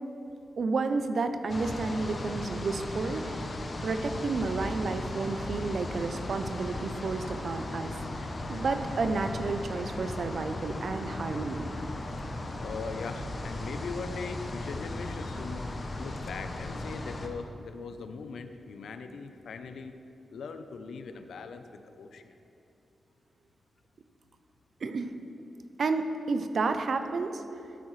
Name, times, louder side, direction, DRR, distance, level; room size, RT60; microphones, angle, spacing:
voice 1, 0.6-3.4 3.8-11.7 24.8-25.1 25.8-27.4, right 3 dB, 50° right, 8 dB, 0.5 m, -31 dB
sound 1, 1.5-17.3, left 2 dB, 35° left, 0.7 m, -37 dB
voice 2, 12.6-15.7 16.0-20.0 20.3-22.3, left 4 dB, 90° left, 8 dB, 0.6 m, -40 dB
13.0 x 8.6 x 3.2 m, 2.8 s
wide cardioid pair, 165°, 0 cm